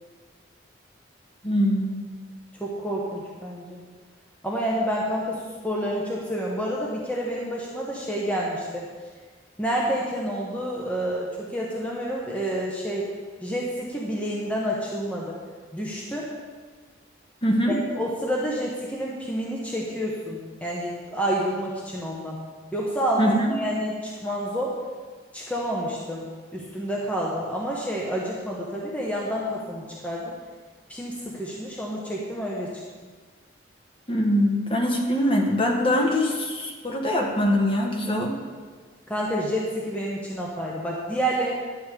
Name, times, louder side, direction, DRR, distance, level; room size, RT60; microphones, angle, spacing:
voice 1, 1.4-2.0 17.4-17.7 23.2-23.5 34.1-38.3, equal, 25° left, 0 dB, 1.4 m, -23 dB
voice 2, 2.6-3.8 4.4-8.9 9.6-13.1 13.4-15.4 15.7-16.3 17.7-22.4 22.7-24.8 25.3-30.4 30.9-32.8 39.1-41.5, equal, 5° left, -4 dB, 1.1 m, -29 dB
11.5 x 8.3 x 4.9 m, 1.5 s
head